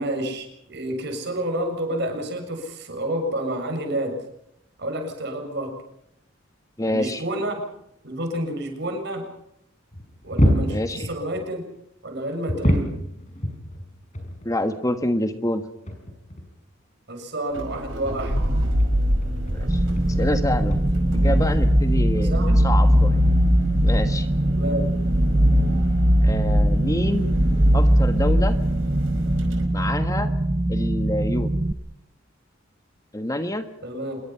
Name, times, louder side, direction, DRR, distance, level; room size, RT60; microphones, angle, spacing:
voice 1, 0.0-4.2 4.8-5.8 6.9-7.6 8.0-9.3 10.2-11.7 12.0-12.9 17.1-18.4 22.2-22.6 24.5-24.9 33.8-34.2, right 1 dB, 60° right, 4 dB, 7.0 m, -29 dB
voice 2, 6.8-7.2 10.7-11.1 14.4-15.6 19.5-19.8 20.2-20.8 21.2-23.2 23.8-24.3 26.2-27.3 27.7-28.6 29.7-30.3 30.7-31.5 33.1-33.7, left 1 dB, 15° left, 8 dB, 1.4 m, -26 dB
sound 1, 9.9-11.5 12.5-14.5 14.9-15.0 15.5-15.6 15.9-16.5 17.8-20.4 20.7-21.0 22.3-23.6 24.9-25.0 25.2-25.4, equal, 40° left, 5.7 m, -27 dB
sound 2, 17.5-29.6, equal, 75° right, 5.1 m, -21 dB
sound 3, 19.7-31.7, right 1 dB, 20° right, 0.8 m, -24 dB
27.0 x 22.0 x 5.8 m, 0.80 s
head